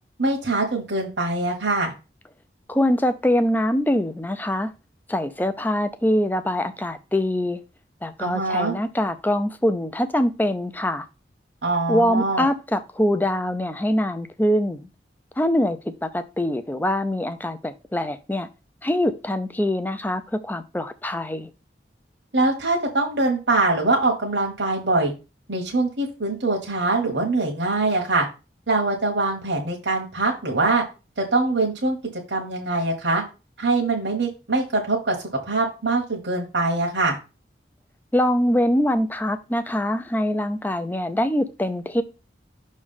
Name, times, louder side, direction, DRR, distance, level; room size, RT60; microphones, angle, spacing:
voice 1, 0.2-1.9 8.2-8.7 11.6-12.4 22.3-25.1 25.5-28.3 28.7-30.8 31.2-32.0 32.3-33.2 33.6-35.2 35.5-37.2, right 2 dB, 75° right, 1.3 m, -23 dB
voice 2, 2.7-4.7 5.1-7.6 8.0-11.1 11.9-14.9 15.4-18.5 18.8-21.5 38.1-42.0, left 1 dB, 10° left, 0.4 m, -23 dB
6.0 x 3.2 x 5.5 m
head